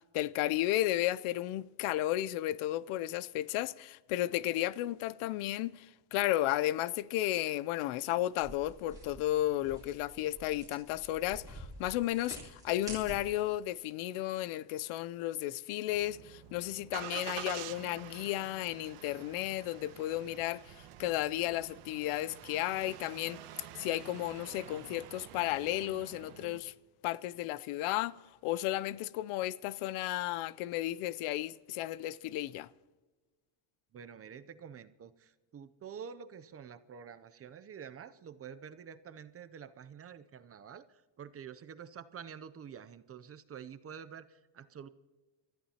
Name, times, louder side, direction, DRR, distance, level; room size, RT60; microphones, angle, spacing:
voice 1, 0.1-5.9 6.1-20.7 21.0-23.4 23.8-26.7 27.0-28.1 28.4-32.7, left 15 dB, 80° left, 0.7 m, -33 dB
sound 1, 8.3-13.6, right 2 dB, 5° right, 3.8 m, -49 dB
Engine starting, 15.9-26.6, right 12 dB, 85° right, 1.2 m, -48 dB
voice 2, 33.9-44.9, right 7 dB, 30° right, 0.5 m, -48 dB
28.5 x 14.0 x 2.9 m
cardioid pair, 135°, 49 cm